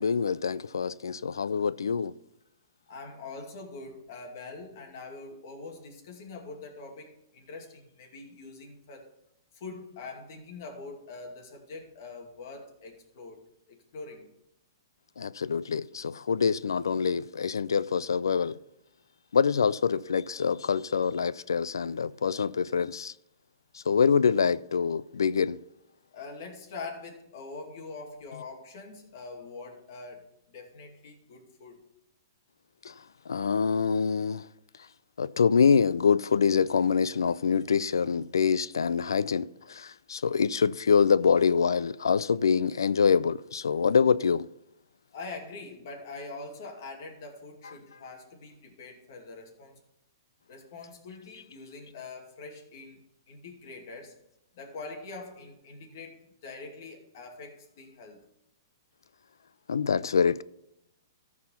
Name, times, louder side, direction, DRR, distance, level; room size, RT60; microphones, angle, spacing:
voice 1, 0.0-2.1 15.2-18.6 19.3-23.1 23.7-25.6 32.8-32.9 33.3-34.5 35.2-44.5 59.7-60.4, left 6 dB, 90° left, 0.3 m, -25 dB
voice 2, 2.9-9.1 9.5-13.4 13.7-14.3 26.1-31.8 45.1-49.7 50.5-53.0 53.3-54.2 54.5-58.3, left 3 dB, 55° left, 2.4 m, -44 dB
14.0 x 4.8 x 5.7 m
hypercardioid pair, 135°, 2 cm